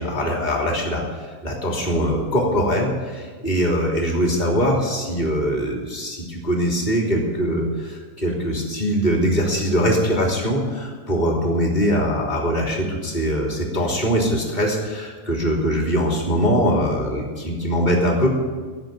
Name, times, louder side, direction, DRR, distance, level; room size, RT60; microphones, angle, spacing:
voice 1, 0.0-18.3, equal, 15° left, -1 dB, 2.5 m, -22 dB
16.5 x 7.1 x 9.3 m, 1.5 s
omnidirectional pair, 4.0 m